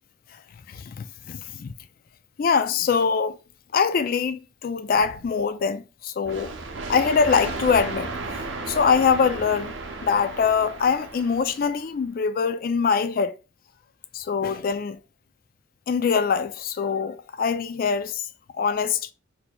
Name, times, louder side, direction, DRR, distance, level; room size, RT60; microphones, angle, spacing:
voice 1, 0.7-1.7 2.4-3.4 3.7-6.5 6.9-8.1 8.7-13.4 14.1-15.0 15.9-18.3 18.6-19.1, left 6 dB, 50° left, 0.3 m, -23 dB
sound 1, 6.2-11.8, right 3 dB, 70° right, 0.6 m, -34 dB
4.2 x 2.7 x 2.2 m
head